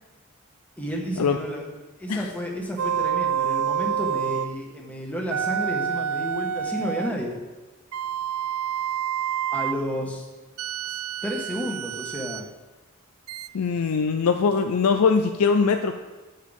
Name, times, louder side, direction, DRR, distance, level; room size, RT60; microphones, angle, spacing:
voice 1, 0.8-1.6 2.0-7.4 9.5-10.3 10.8-12.5, equal, 5° left, -1 dB, 1.4 m, -31 dB
sound 1, 2.8-4.5 5.3-7.2 7.9-9.8 10.6-12.5 13.3-13.5, right 8 dB, 75° right, 0.4 m, -28 dB
voice 2, 13.5-15.9, left 5 dB, 90° left, 6 dB, 0.5 m, -21 dB
12.0 x 7.7 x 3.5 m, 1.2 s
head